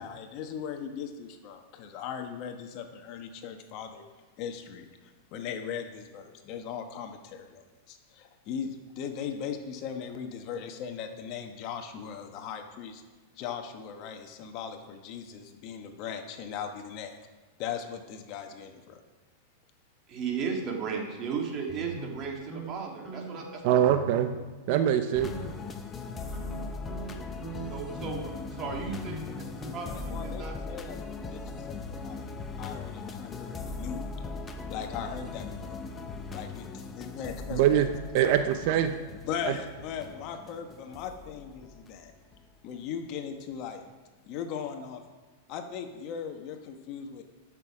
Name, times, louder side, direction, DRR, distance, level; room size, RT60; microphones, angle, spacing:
voice 1, 0.0-4.0 4.4-4.9 5.3-8.7 8.9-13.0 13.4-17.1 17.6-19.0 30.1-32.2 32.6-34.0 34.7-35.8 36.3-36.7 36.9-37.6 39.3-42.1 42.6-43.9 44.3-45.0 45.5-47.2, left 7 dB, 45° left, 6 dB, 1.2 m, -38 dB
voice 2, 20.1-23.9 27.7-29.2 29.7-30.5, right 5 dB, 35° right, 1 dB, 2.2 m, -35 dB
sound 1, 21.7-22.7 23.1-23.5 23.9-24.4 24.7-24.9 25.2-25.7 26.1-30.4, right 2 dB, ahead, 3.3 m, -42 dB
voice 3, 23.6-24.3 24.7-25.3 37.5-38.9, right 10 dB, 55° right, 8 dB, 0.6 m, -23 dB
sound 2, 25.1-42.8 43.5-43.7, left 4 dB, 20° left, 0.9 m, -39 dB
12.0 x 6.2 x 5.0 m, 1.3 s
hypercardioid pair, 125°, 0 cm